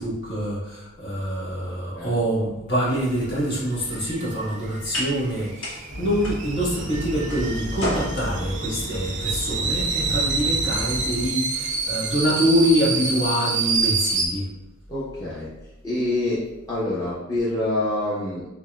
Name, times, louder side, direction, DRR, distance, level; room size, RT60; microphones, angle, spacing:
voice 1, 0.0-14.4, equal, 55° left, -7 dB, 1.4 m, -25 dB
sound 1, 2.9-14.3, right 4 dB, 35° right, 0.4 m, -28 dB
sound 2, 3.8-11.8, equal, 70° left, 1.2 m, -37 dB
sound 3, 5.9-11.3, equal, 90° left, 0.9 m, -32 dB
voice 2, 14.9-15.5 15.8-16.4 16.7-18.5, left 1 dB, 15° left, -9 dB, 0.7 m, -26 dB
5.8 x 2.2 x 2.3 m, 0.98 s
head